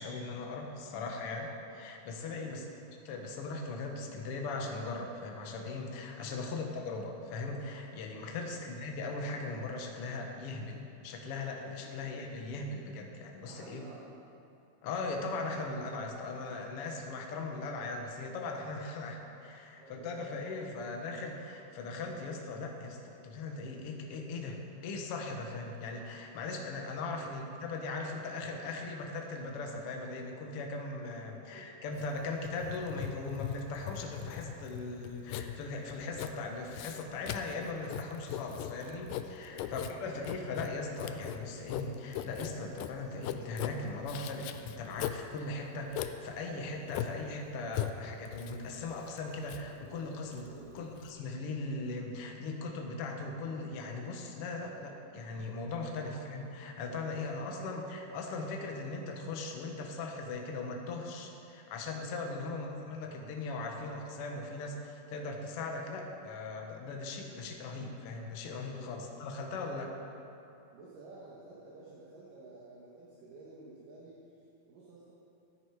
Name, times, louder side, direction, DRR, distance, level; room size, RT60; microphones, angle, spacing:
voice 1, 0.0-2.6 3.0-13.8 14.8-69.9, left 3 dB, 65° left, 2 dB, 1.5 m, -39 dB
voice 2, 2.3-2.8 6.1-6.5 8.3-8.6 11.7-12.1 13.4-14.3 18.7-19.0 19.8-20.8 27.0-27.3 27.7-27.8 31.3-31.8 37.8-37.9 39.5-40.2 50.5-50.8 55.8-56.1 56.8-58.1 62.3-62.6 68.7-69.1 69.6-69.8 70.7-75.1, right 2 dB, 70° right, -6 dB, 3.0 m, -53 dB
Writing, 32.0-51.1, left 11 dB, 80° left, 2.0 m, -40 dB
14.0 x 10.0 x 4.8 m, 2.8 s
omnidirectional pair, 4.2 m